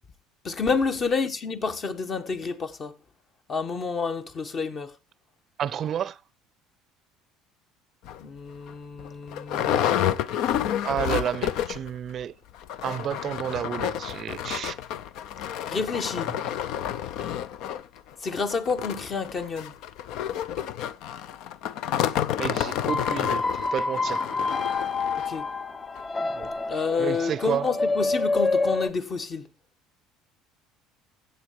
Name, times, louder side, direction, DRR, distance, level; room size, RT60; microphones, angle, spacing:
voice 1, 0.4-3.0 3.5-4.9 8.2-10.1 15.7-16.3 18.2-19.7 25.2-25.5 26.6-29.5, left 4 dB, 40° left, 1.4 m, -29 dB
voice 2, 5.6-6.2 10.8-12.3 12.8-14.8 22.4-24.3 26.3-27.7, right 9 dB, 45° right, 0.5 m, -31 dB
sound 1, 8.1-8.2 8.7-8.8 9.0-11.9 12.2-12.3 12.6-25.4 26.0-26.1 26.4-26.5, left 10 dB, 65° left, 0.6 m, -30 dB
ghost dreamer, 22.7-28.9, left 3 dB, 25° left, 0.6 m, -27 dB
15.0 x 8.0 x 3.2 m
hypercardioid pair, 70°, 0 cm